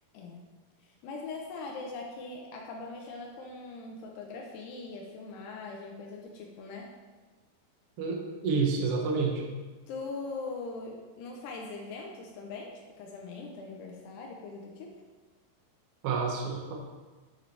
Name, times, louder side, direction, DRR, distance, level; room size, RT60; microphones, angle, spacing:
voice 1, 0.8-6.9 9.9-14.9, left 3 dB, 80° left, 0 dB, 2.9 m, -41 dB
voice 2, 8.0-9.4 16.0-16.7, right 4 dB, 85° right, -1 dB, 1.3 m, -29 dB
9.1 x 8.3 x 3.3 m, 1.3 s
omnidirectional pair, 4.8 m